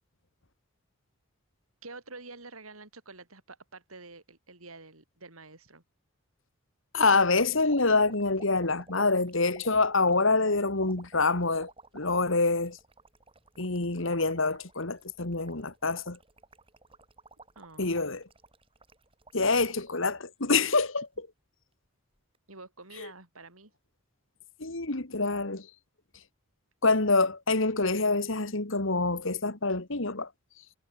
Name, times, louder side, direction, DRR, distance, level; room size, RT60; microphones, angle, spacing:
voice 1, 1.8-5.8 17.5-18.0 22.5-23.7, right 3 dB, 85° right, 6.6 m, -48 dB
voice 2, 6.9-12.8 13.6-16.2 17.8-18.2 19.3-21.1 23.0-23.1 24.6-25.7 26.8-30.3, left 3 dB, 65° left, 2.1 m, -26 dB
sound 1, 7.7-20.0 20.5-21.2 22.2-22.4, right 3 dB, 25° right, 7.3 m, -54 dB
head